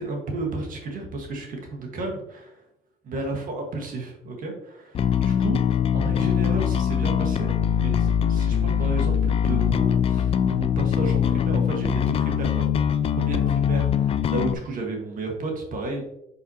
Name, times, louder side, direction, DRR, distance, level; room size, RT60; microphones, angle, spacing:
voice 1, 0.0-2.6 3.0-5.6 5.9-12.6 13.2-16.1, right 2 dB, 55° right, 1 dB, 1.5 m, -32 dB
Bass guitar, 4.9-14.5, left 8 dB, 35° left, 0.3 m, -22 dB
6.1 x 5.5 x 2.8 m, 0.85 s
cardioid pair, 110°, 17 cm